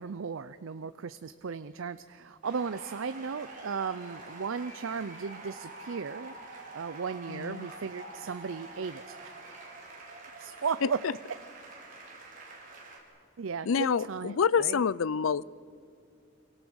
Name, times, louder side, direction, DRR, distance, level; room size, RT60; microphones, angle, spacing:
voice 1, 0.0-9.3 10.4-11.0 13.4-14.8, right 5 dB, 80° right, 13 dB, 0.5 m, -36 dB
sound 1, 2.4-13.0, right 2 dB, 40° right, 4.5 m, -46 dB
voice 2, 7.3-7.7 10.8-10.9 13.7-15.4, left 6 dB, 85° left, 21 dB, 0.5 m, -27 dB
26.5 x 23.5 x 6.4 m, 2.5 s
head